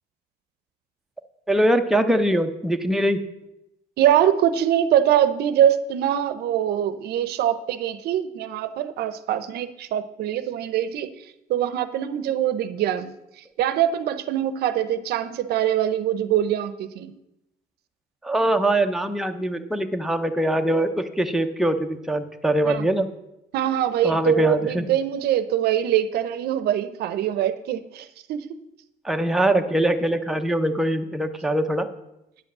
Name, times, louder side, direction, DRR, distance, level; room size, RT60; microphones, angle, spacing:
voice 1, 1.5-3.2 18.2-23.1 24.0-24.9 29.0-31.9, right 1 dB, ahead, 5 dB, 0.8 m, -22 dB
voice 2, 4.0-11.1 11.5-13.2 13.6-17.2 22.6-22.9 23.5-28.6, right 10 dB, 75° right, 12 dB, 0.7 m, -23 dB
9.5 x 5.3 x 7.2 m, 0.88 s
cardioid pair, 110°, 17 cm